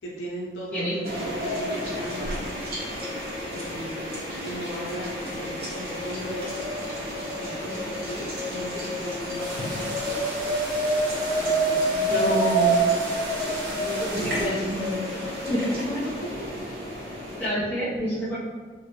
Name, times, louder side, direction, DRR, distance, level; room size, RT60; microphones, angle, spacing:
voice 1, 0.0-2.5 3.5-6.7 7.4-10.4 10.9-11.1 11.4-12.3 13.4-15.5, equal, 85° left, -4 dB, 0.6 m, -37 dB
sound 1, 1.0-17.5, right 1 dB, 55° right, 0.9 m, -29 dB
sound 2, 9.4-14.5, right 1 dB, 85° right, 0.7 m, -37 dB
voice 2, 12.1-12.8 14.2-14.8 15.5-15.6 17.4-18.4, equal, 10° left, -11 dB, 0.5 m, -27 dB
3.1 x 2.7 x 2.8 m, 1.4 s
head